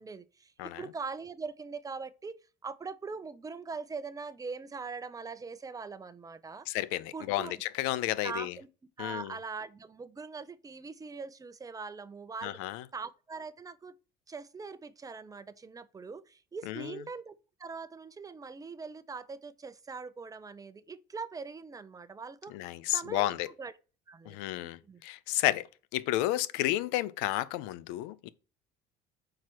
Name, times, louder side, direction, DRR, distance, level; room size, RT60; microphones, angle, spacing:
voice 1, 0.0-6.7 7.1-7.6 8.2-8.7 9.0-12.6 12.9-13.9 14.3-17.3 17.6-22.5 22.9-23.7 24.1-25.0, right 4 dB, 20° right, 0.6 m, -42 dB
voice 2, 6.7-8.5 9.0-9.3 12.4-12.8 16.7-16.9 22.5-23.5 24.3-25.7 25.9-28.3, left 15 dB, 90° left, 0.5 m, -32 dB
4.8 x 4.4 x 6.0 m
supercardioid pair, 95°, 19 cm